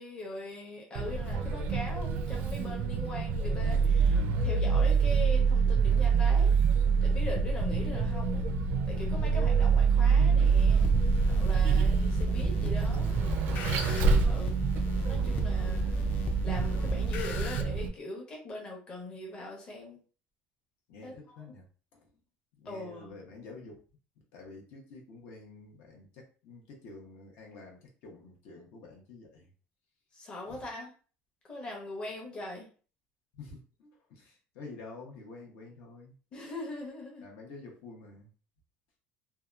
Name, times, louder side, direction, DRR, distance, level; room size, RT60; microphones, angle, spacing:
voice 1, 0.0-6.5 7.0-8.4 8.9-10.9 11.3-13.1 13.7-14.6 15.0-16.1 16.4-20.0 21.0-21.5 22.6-23.2 30.1-30.9 31.5-32.7 36.3-37.3, left 1 dB, 25° left, -2 dB, 0.8 m, -41 dB
Vehicle, 0.9-17.9, right 5 dB, 55° right, 0.4 m, -26 dB
sound 1, 10.4-17.6, right 3 dB, 45° left, 0.3 m, -32 dB
voice 2, 20.9-21.6 21.9-22.0 22.6-23.8 24.3-29.5 30.5-30.6 33.3-36.2 37.2-38.3, left 3 dB, 65° left, 0 dB, 0.8 m, -49 dB
2.7 x 2.2 x 2.3 m, 0.38 s
cardioid pair, 170°, 4 cm